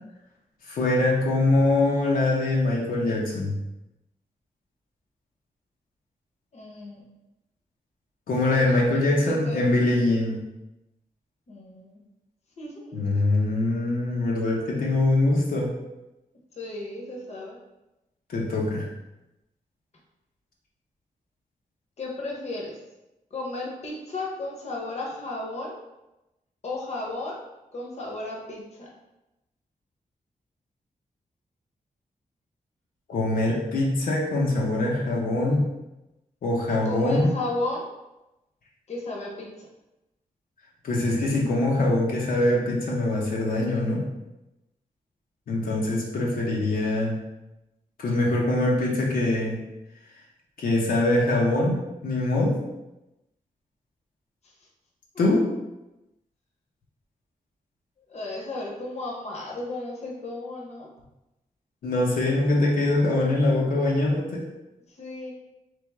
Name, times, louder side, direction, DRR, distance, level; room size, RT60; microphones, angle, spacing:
voice 1, 0.7-3.5 8.3-10.4 12.9-15.8 18.3-18.9 33.1-35.7 36.4-37.4 40.8-44.1 45.5-47.2 48.0-49.6 50.6-52.6 55.2-55.5 61.8-64.5, left 2 dB, 85° left, -3 dB, 0.7 m, -23 dB
voice 2, 6.5-7.0 8.5-9.6 11.5-12.0 12.6-13.2 16.6-17.6 22.0-22.8 23.3-25.8 26.6-27.4 27.7-28.9 36.7-37.9 38.9-39.7 58.1-60.9 65.0-65.3, left 2 dB, 50° left, -2 dB, 0.8 m, -34 dB
3.4 x 3.3 x 3.3 m, 0.97 s
wide cardioid pair, 145°, 14 cm